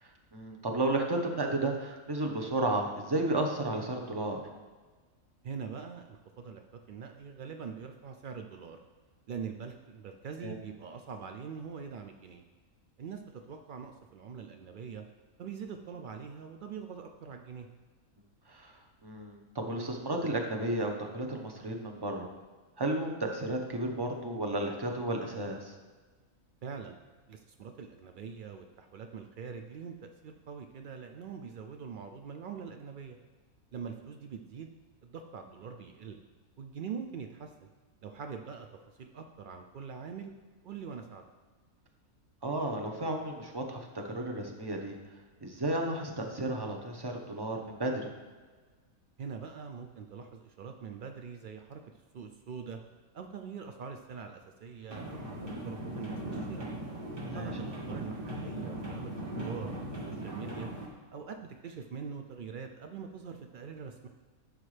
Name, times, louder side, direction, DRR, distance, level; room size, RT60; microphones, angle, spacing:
voice 1, 0.0-4.4 10.4-10.6 18.5-18.8 19.0-22.3 22.8-25.7 42.4-44.9 45.4-48.1 57.3-57.5, right 2 dB, 20° right, 2 dB, 0.8 m, -33 dB
voice 2, 5.4-8.8 9.3-12.4 13.0-15.1 15.4-17.7 26.6-27.0 27.3-33.2 33.7-34.7 35.0-36.2 36.6-37.7 38.0-38.7 38.9-40.3 40.6-41.3 49.2-51.8 52.1-52.8 53.1-55.4 55.6-56.7 57.3-60.7 61.1-64.1, right 6 dB, 80° right, 5 dB, 0.4 m, -43 dB
sound 1, 54.9-60.9, right 1 dB, 40° right, 1.8 m, -39 dB
11.0 x 6.6 x 3.3 m, 1.4 s
omnidirectional pair, 1.5 m